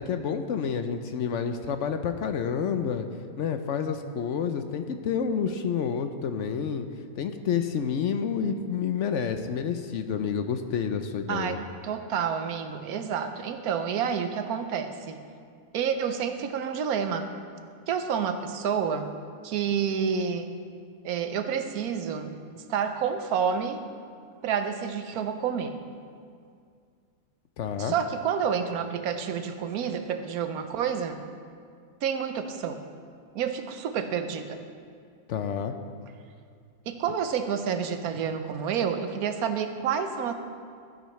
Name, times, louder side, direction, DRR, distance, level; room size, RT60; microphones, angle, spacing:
voice 1, 0.0-3.1 3.4-6.9 7.2-11.6 27.6-28.0 35.3-35.8, left 7 dB, 65° left, 7 dB, 0.8 m, -29 dB
voice 2, 11.3-11.6 11.8-15.2 15.7-17.3 17.9-19.1 19.4-20.5 21.0-23.8 24.4-25.8 27.8-31.2 32.0-32.8 33.3-34.6 36.9-40.3, right 7 dB, 80° right, 8 dB, 1.2 m, -29 dB
15.0 x 10.5 x 3.1 m, 2.2 s
omnidirectional pair, 1.5 m